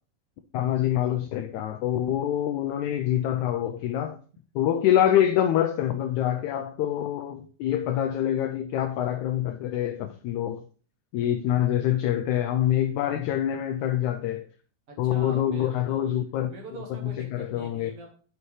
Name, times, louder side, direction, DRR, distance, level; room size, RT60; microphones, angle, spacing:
voice 1, 0.5-4.2 4.5-10.6 11.1-14.5 15.0-16.5 17.0-17.9, left 11 dB, 85° left, 1.7 m, -25 dB
voice 2, 14.9-16.1 16.5-18.1, right 2 dB, 50° right, 2.3 m, -43 dB
9.7 x 6.8 x 3.2 m
omnidirectional pair, 4.0 m